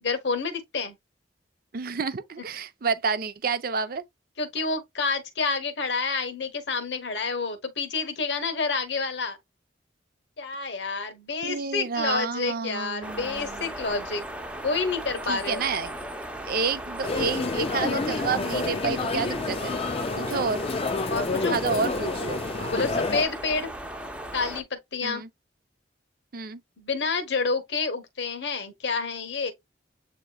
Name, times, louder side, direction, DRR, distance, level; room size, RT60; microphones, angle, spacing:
voice 1, 0.0-0.9 4.4-9.4 10.4-14.2 14.6-15.6 21.1-21.6 22.7-23.7 24.3-25.2 26.8-29.5, left 4 dB, 70° left, 1.1 m, -29 dB
voice 2, 1.7-4.0 11.4-13.7 15.3-15.9 16.5-19.8 20.2-20.6 21.5-22.9 25.0-25.3 26.3-26.6, right 5 dB, 50° right, 0.5 m, -29 dB
sound 1, 13.0-24.6, right 1 dB, 5° right, 0.7 m, -37 dB
sound 2, 17.0-23.2, left 3 dB, 30° left, 0.4 m, -29 dB
8.0 x 2.9 x 2.2 m
head